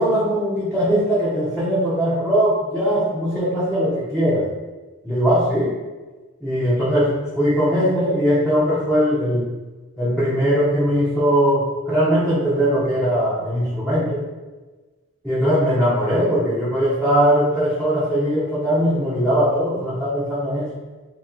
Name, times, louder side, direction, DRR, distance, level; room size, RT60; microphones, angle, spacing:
voice 1, 0.0-4.5 5.0-5.8 6.4-9.4 10.0-14.2 15.2-20.7, equal, 5° left, -11 dB, 0.7 m, -20 dB
3.2 x 2.8 x 3.6 m, 1.2 s
head